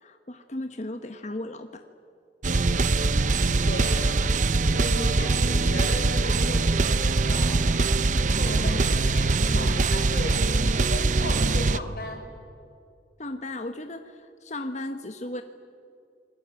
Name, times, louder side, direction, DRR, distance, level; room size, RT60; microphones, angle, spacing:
voice 1, 0.0-1.8 13.2-15.4, left 1 dB, 40° left, 7 dB, 1.2 m, -35 dB
sound 1, 2.4-11.8, right 3 dB, 45° right, 0.7 m, -23 dB
voice 2, 3.6-8.1 8.3-10.4 10.9-12.2, left 1 dB, 55° left, 3 dB, 5.2 m, -36 dB
27.5 x 21.0 x 8.9 m, 2.4 s
head